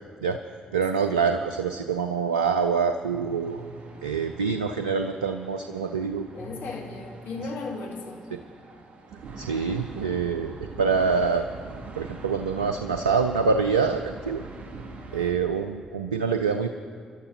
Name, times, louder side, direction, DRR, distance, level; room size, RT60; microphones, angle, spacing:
voice 1, 0.7-3.6 4.0-6.3 8.3-8.4 9.4-11.5 12.0-14.4 15.1-16.7, right 5 dB, 90° right, 7 dB, 0.4 m, -25 dB
sound 1, 1.1-15.3, right 2 dB, 45° right, 2.3 m, -47 dB
voice 2, 6.3-8.2 15.0-15.3, left 3 dB, 60° left, -2 dB, 2.5 m, -36 dB
sound 2, 9.1-15.4, right 4 dB, 60° right, 2.3 m, -42 dB
29.5 x 12.0 x 2.8 m, 2.1 s
hypercardioid pair, 40°, 4 cm